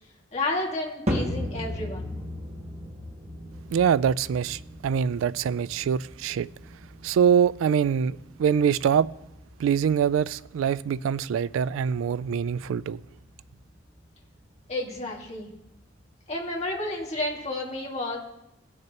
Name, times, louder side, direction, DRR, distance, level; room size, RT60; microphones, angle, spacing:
voice 1, 0.3-2.1 14.7-15.5 16.3-18.2, left 2 dB, 35° left, 2.0 m, -31 dB
sound 1, 1.1-17.5, equal, 35° right, 1.3 m, -38 dB
voice 2, 3.7-6.5 7.0-9.1 9.6-13.0, right 7 dB, 90° right, 0.3 m, -24 dB
18.5 x 6.5 x 2.9 m
head